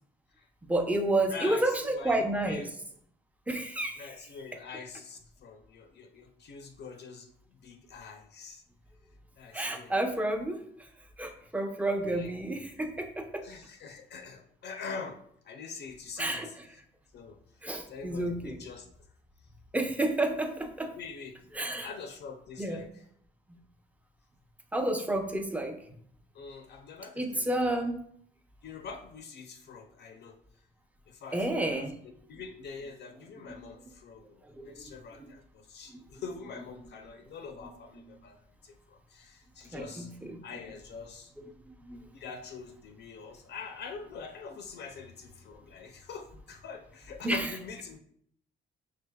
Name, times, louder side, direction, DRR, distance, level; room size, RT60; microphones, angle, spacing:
voice 1, 0.7-2.7 3.5-4.1 9.5-10.6 11.2-13.4 16.2-16.5 17.6-18.6 19.7-20.9 21.6-21.9 22.6-22.9 23.5-23.6 24.7-25.8 27.2-28.1 31.3-31.9 33.5-33.6 34.5-34.7 35.2-35.3 39.7-40.4 41.4-41.5 41.9-42.0 47.2-47.5, right 1 dB, 5° right, 5 dB, 0.6 m, -30 dB
voice 2, 1.2-2.7 4.0-8.6 9.4-10.3 12.1-12.3 13.4-16.8 17.1-17.4 17.9-18.9 20.9-21.4 21.8-23.1 26.3-27.7 28.6-30.4 31.1-38.4 38.6-40.1 40.4-41.3 42.1-48.0, left 5 dB, 60° left, 5 dB, 0.5 m, -44 dB
5.7 x 3.3 x 2.2 m, 0.66 s
cardioid pair, 90°, 20 cm